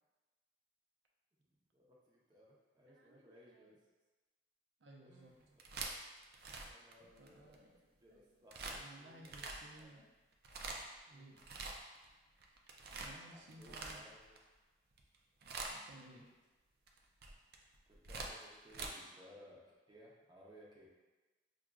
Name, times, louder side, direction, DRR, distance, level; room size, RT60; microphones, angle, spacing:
voice 1, 1.4-3.8 5.0-5.6 6.6-7.6 8.0-9.5 9.8-10.0 11.1-11.4 13.3-14.3 17.9-20.9, equal, 25° right, -4 dB, 0.7 m, -61 dB
voice 2, 2.9-3.7 4.8-5.3 7.2-8.5 8.7-10.0 11.1-11.4 12.9-14.1 15.6-16.3 18.8-19.4, right 1 dB, 90° right, -1 dB, 0.7 m, -59 dB
sound 1, 5.4-7.6 8.5-8.8 9.2-9.8 10.3-11.0 11.4-12.1 12.4-14.4 14.9-15.2 15.4-16.0 16.9-18.9, right 3 dB, 55° right, 0.4 m, -45 dB
6.1 x 2.4 x 2.3 m, 1.2 s
head